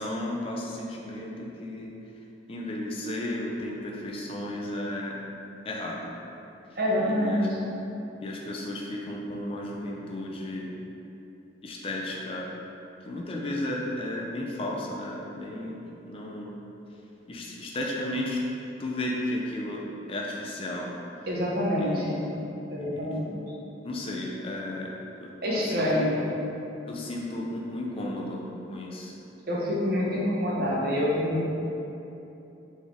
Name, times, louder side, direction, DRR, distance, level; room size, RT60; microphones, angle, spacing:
voice 1, 0.0-1.9 2.5-5.2 5.6-6.1 7.0-7.5 8.2-10.7 11.6-12.5 13.0-16.5 17.3-18.4 18.8-19.8 20.1-20.9 21.8-22.2 22.7-23.1 23.8-24.9 25.2-26.2 26.9-29.1, left 1 dB, 30° left, -2 dB, 0.4 m, -34 dB
voice 2, 6.8-7.7 21.3-22.3 22.7-23.3 25.4-26.3 29.5-31.5, left 1 dB, 55° right, -6 dB, 0.9 m, -26 dB
3.9 x 3.6 x 3.4 m, 2.9 s
head